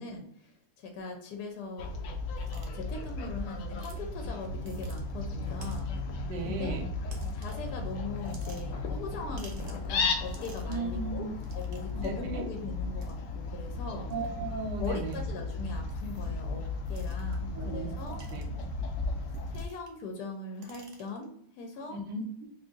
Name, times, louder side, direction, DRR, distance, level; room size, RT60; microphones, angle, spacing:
voice 1, 0.0-1.9 2.5-5.9 6.4-6.8 7.3-11.3 11.6-14.1 14.8-18.2 19.5-22.0, left 3 dB, 75° left, 3 dB, 1.1 m, -40 dB
Fowl, 1.8-19.7, left 3 dB, 90° left, 0.6 m, -35 dB
sound 1, 2.4-2.7 3.8-4.0 4.6-5.0 5.6-6.0 7.1-7.7 8.2-8.9 9.4-9.9 10.2-10.9 11.4-12.1 13.0-13.1 14.1-14.3 14.8-15.2 15.9-16.4 16.9-17.4 18.0-18.6 19.3-20.0 20.3-21.2, right 3 dB, 60° right, 1.0 m, -53 dB
voice 2, 6.2-6.9 10.7-11.3 11.9-12.4 14.1-15.3 17.5-17.9 18.3-18.4 21.9-22.5, right 3 dB, 80° right, 4 dB, 1.3 m, -36 dB
2.9 x 2.5 x 3.7 m, 0.69 s
omnidirectional pair, 1.9 m